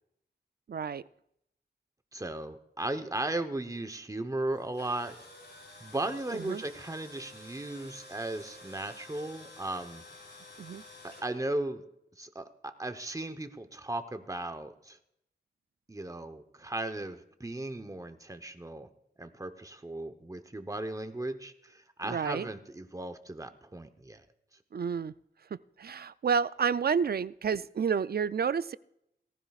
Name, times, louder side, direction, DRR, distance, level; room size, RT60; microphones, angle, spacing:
voice 1, 0.7-1.0 6.3-6.6 10.6-10.8 22.0-22.5 24.7-25.1 25.5-28.8, right 6 dB, 60° right, 17 dB, 0.4 m, -30 dB
voice 2, 2.1-5.2 5.8-10.0 11.0-11.8 12.2-15.0 15.9-18.9 19.2-24.2, right 2 dB, 20° right, 8 dB, 0.9 m, -36 dB
Tools, 4.5-11.2, left 2 dB, 65° left, 6.0 m, -51 dB
18.0 x 15.0 x 2.4 m, 0.77 s
wide cardioid pair, 70°, 18 cm